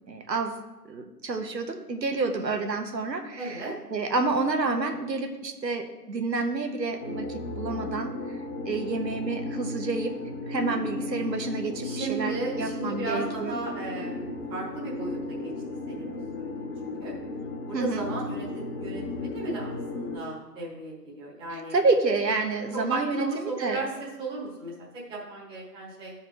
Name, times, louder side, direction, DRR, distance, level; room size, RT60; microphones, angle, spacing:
voice 1, 0.1-0.6 0.9-3.6 3.9-8.1 8.6-10.1 10.5-13.6 17.7-18.1 21.5-23.2 23.6-23.8, right 3 dB, 90° right, 5 dB, 1.1 m, -29 dB
voice 2, 3.4-3.7 10.5-10.9 11.8-15.5 15.9-17.1 17.7-21.8 22.7-26.1, right 3 dB, 10° right, -6 dB, 1.3 m, -35 dB
sound 1, 7.0-20.2, left 2 dB, 40° left, 1.1 m, -35 dB
12.0 x 4.3 x 3.7 m, 1.1 s
figure-of-eight pair, 140°, 49 cm